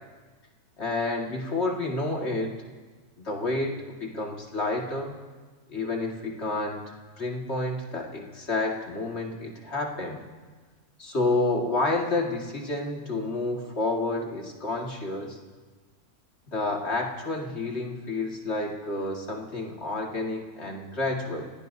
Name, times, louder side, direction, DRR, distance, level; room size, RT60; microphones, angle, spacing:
voice 1, 0.8-2.7 3.2-3.7 4.0-5.1 5.7-6.8 7.2-10.2 11.0-15.4 16.5-21.5, left 2 dB, 45° left, 0 dB, 2.2 m, -29 dB
30.0 x 17.0 x 2.7 m, 1.4 s
omnidirectional pair, 1.6 m